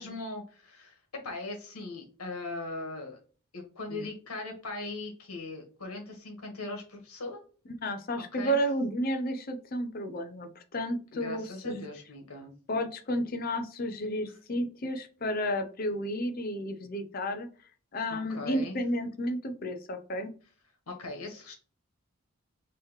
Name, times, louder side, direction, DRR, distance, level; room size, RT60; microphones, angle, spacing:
voice 1, 0.0-3.2 3.5-7.4 8.2-8.6 11.1-12.5 18.1-18.8 20.9-21.5, left 2 dB, 85° left, 2 dB, 1.4 m, -39 dB
voice 2, 7.8-11.8 12.7-17.5 17.9-20.3, equal, 40° left, 7 dB, 0.6 m, -32 dB
3.8 x 3.0 x 3.1 m, 0.38 s
head